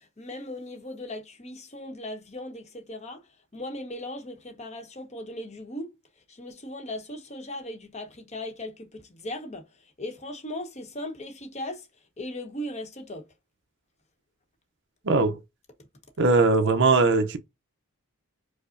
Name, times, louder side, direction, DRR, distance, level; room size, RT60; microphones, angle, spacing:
voice 1, 0.0-3.3 3.5-5.9 6.3-11.9 12.2-13.3, left 1 dB, 30° left, 0.9 m, -38 dB
voice 2, 15.1-15.4 16.2-17.4, right 3 dB, 55° right, 0.6 m, -20 dB
4.9 x 2.0 x 2.5 m
head